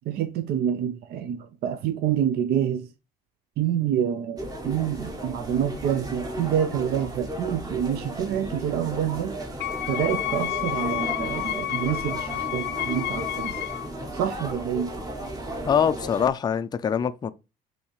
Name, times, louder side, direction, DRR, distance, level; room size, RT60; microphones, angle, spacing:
voice 1, 0.1-2.9 3.6-9.3 9.9-13.5 14.1-14.9, right 9 dB, 70° right, 0.5 m, -27 dB
sound 1, 4.4-16.3, right 1 dB, 20° right, 1.0 m, -35 dB
Wind instrument woodwind instrument, 9.6-13.9, left 15 dB, 80° left, 0.6 m, -30 dB
voice 2, 15.7-17.3, left 7 dB, 25° left, 0.3 m, -23 dB
5.4 x 2.8 x 3.1 m
cardioid pair, 110°, 17 cm